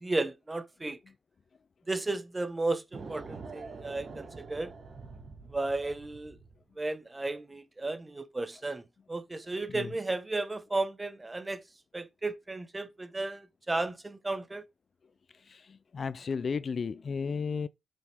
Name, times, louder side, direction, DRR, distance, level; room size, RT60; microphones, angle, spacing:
voice 1, 0.0-1.0 1.9-4.7 5.5-6.3 6.8-8.8 9.1-11.6 11.9-14.6, right 2 dB, 15° right, 1.1 m, -34 dB
sound 1, 2.9-6.6, right 4 dB, 45° right, 2.6 m, -46 dB
voice 2, 15.4-17.7, left 5 dB, 40° left, 0.4 m, -34 dB
8.1 x 7.5 x 3.5 m
cardioid pair, 125°, 0 cm